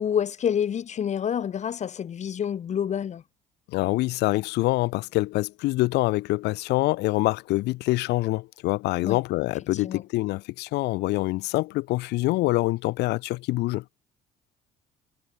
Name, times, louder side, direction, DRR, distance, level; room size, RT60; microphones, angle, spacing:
voice 1, 0.0-3.2 9.0-9.2 9.7-10.0, left 8 dB, 45° left, 1.4 m, -28 dB
voice 2, 3.7-13.8, left 19 dB, 80° left, 0.7 m, -25 dB
cardioid pair, 110°, 17 cm